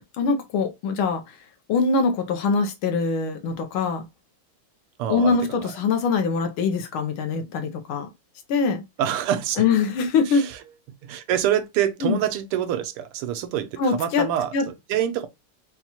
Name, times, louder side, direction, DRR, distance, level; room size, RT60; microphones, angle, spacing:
voice 1, 0.2-1.3 1.7-4.0 5.1-8.1 8.5-8.8 9.6-10.4 12.0-12.2 13.8-14.3 14.5-14.6, left 4 dB, 75° left, 1.5 m, -23 dB
voice 2, 5.0-5.7 9.0-9.6 10.3-10.6 11.0-15.3, right 10 dB, 85° right, 1.6 m, -26 dB
5.6 x 2.3 x 2.8 m
omnidirectional pair, 2.4 m